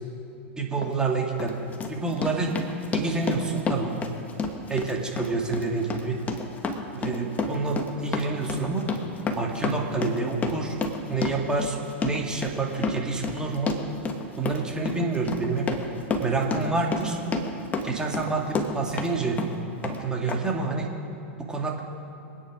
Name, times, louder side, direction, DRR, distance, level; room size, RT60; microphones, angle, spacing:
voice 1, 0.6-1.6 1.9-2.6 2.9-4.0 4.7-6.2 6.9-8.9 9.3-10.8 11.1-11.8 12.0-13.8 14.4-15.7 16.2-17.2 17.8-19.4 19.8-20.9 21.5-21.8, right 3 dB, 10° right, 0 dB, 2.4 m, -28 dB
Run, 0.8-0.9 1.4-19.1 19.4-20.0 20.3-20.4, left 3 dB, 25° left, 1.6 m, -30 dB
24.5 x 9.8 x 5.1 m, 2.9 s
hypercardioid pair, 115°, 7 cm